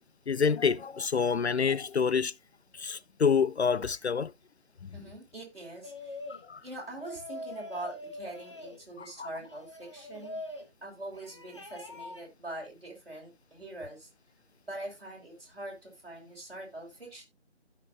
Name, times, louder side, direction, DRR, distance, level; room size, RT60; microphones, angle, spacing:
voice 1, 0.3-2.3 2.8-4.3 4.8-4.9 6.3-6.6 9.0-9.3, left 6 dB, 70° left, 0.5 m, -27 dB
voice 2, 4.9-6.2 6.6-10.4 10.8-14.1 14.6-17.2, right 1 dB, 55° right, 5.2 m, -43 dB
sound 1, 5.8-6.5 7.0-8.8 9.4-10.7 11.1-12.2, left 1 dB, 25° left, 1.1 m, -43 dB
15.5 x 5.9 x 2.5 m
figure-of-eight pair, 165°, 35 cm